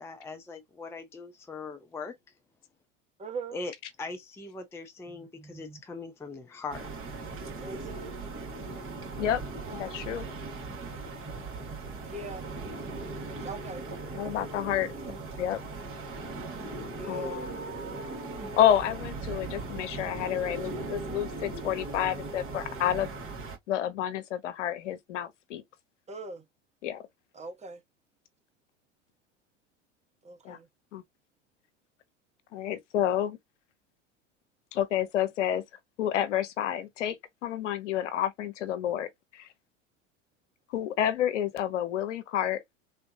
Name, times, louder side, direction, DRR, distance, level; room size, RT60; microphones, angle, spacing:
voice 1, 0.0-2.2 3.5-3.7 4.0-6.9, left 3 dB, 5° left, 0.5 m, -40 dB
voice 2, 3.2-3.6 7.6-8.1 9.7-9.8 12.1-12.4 13.4-13.8 16.9-17.5 26.1-26.4 27.3-27.8 30.2-30.7, right 2 dB, 20° right, 0.9 m, -40 dB
sound 1, 6.7-23.6, right 3 dB, 35° right, 2.1 m, -38 dB
voice 3, 9.7-10.2 14.1-14.9 15.4-15.6 17.0-17.5 18.6-23.1 23.7-25.6 26.8-27.0 30.4-30.6 30.9-31.0 32.5-33.4 34.7-35.6 36.0-37.2 37.4-39.5 40.7-42.6, left 10 dB, 75° left, 0.8 m, -29 dB
3.5 x 2.5 x 2.6 m
hypercardioid pair, 80°, 37 cm